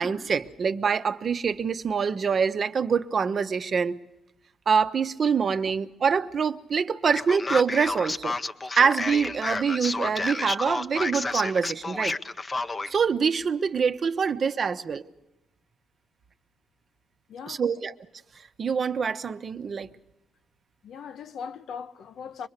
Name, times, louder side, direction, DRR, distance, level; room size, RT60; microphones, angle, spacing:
voice 1, 0.0-4.0 4.7-8.4 8.8-12.2 12.9-15.1 17.5-17.9 18.6-19.9, right 6 dB, 45° right, 0.9 m, -25 dB
Male speech man speaking, 7.2-13.0, left 3 dB, 25° left, 0.7 m, -30 dB
voice 2, 17.3-17.6 20.8-22.5, left 6 dB, 65° left, 0.9 m, -39 dB
24.5 x 21.5 x 6.6 m
cardioid pair, 90°, 0 cm